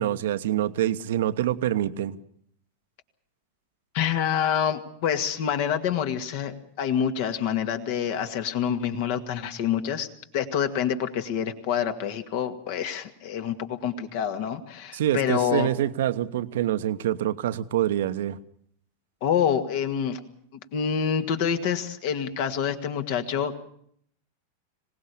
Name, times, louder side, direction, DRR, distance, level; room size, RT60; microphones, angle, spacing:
voice 1, 0.0-2.2 14.9-18.4, right 12 dB, 55° right, 13 dB, 1.0 m, -26 dB
voice 2, 3.9-10.1 10.3-15.7 19.2-20.2 20.7-23.5, left 8 dB, 50° left, 8 dB, 2.0 m, -27 dB
25.0 x 18.5 x 6.8 m, 0.67 s
figure-of-eight pair, 90°, 0 cm